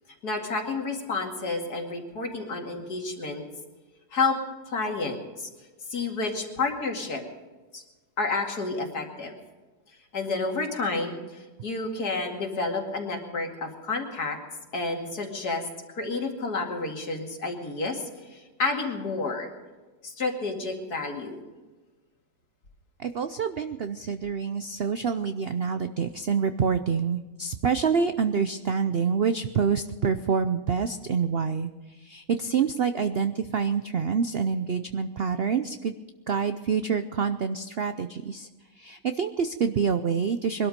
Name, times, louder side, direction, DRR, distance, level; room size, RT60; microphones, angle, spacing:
voice 1, 0.2-3.4 4.1-4.4 4.6-5.5 5.9-7.2 7.7-7.8 8.2-9.3 10.1-14.4 14.7-15.6 15.9-19.5 20.0-21.4, left 3 dB, 60° left, 2 dB, 2.8 m, -30 dB
voice 2, 23.0-31.7 32.0-35.9 36.3-38.5 38.8-40.7, right 6 dB, 80° right, 10 dB, 0.5 m, -27 dB
22.0 x 12.5 x 5.2 m, 1.2 s
omnidirectional pair, 1.9 m